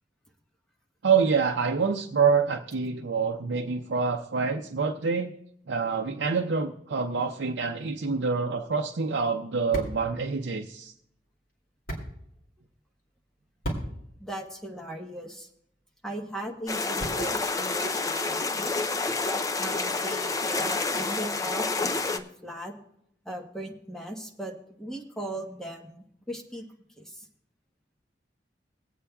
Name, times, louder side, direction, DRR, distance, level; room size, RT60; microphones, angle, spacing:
voice 1, 1.0-5.3 5.7-10.9, right 5 dB, 85° right, 3 dB, 0.5 m, -26 dB
sound 1, 8.5-17.5, right 1 dB, 55° left, 2.5 m, -41 dB
voice 2, 14.2-15.5 16.0-19.0 19.6-22.8 23.2-26.7 27.0-27.3, right 1 dB, 5° left, 0 dB, 1.1 m, -38 dB
sound 2, 16.7-22.2, left 3 dB, 20° left, 0.5 m, -28 dB
24.5 x 8.4 x 2.3 m, 0.75 s
head